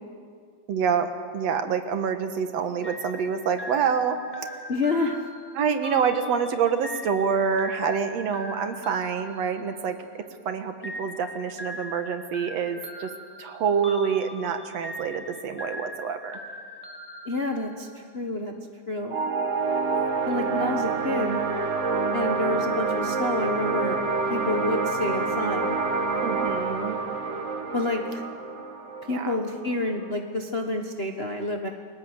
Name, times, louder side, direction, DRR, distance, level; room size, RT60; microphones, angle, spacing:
voice 1, 0.7-4.2 5.5-13.1 13.4-16.4 26.2-27.0 29.1-29.4, right 6 dB, 60° right, 8 dB, 2.4 m, -27 dB
sound 1, 2.8-10.3 10.8-18.1, left 1 dB, 15° left, 0.7 m, -41 dB
voice 2, 4.7-5.3 17.2-18.5 18.9-19.2 20.3-21.4 22.1-24.0 24.3-25.8 27.7-28.2 29.1-31.7, left 2 dB, 70° left, 3 dB, 0.5 m, -28 dB
sound 2, 19.1-30.2, right 4 dB, 40° right, 1.0 m, -27 dB
29.5 x 21.0 x 8.1 m, 2.1 s
omnidirectional pair, 3.5 m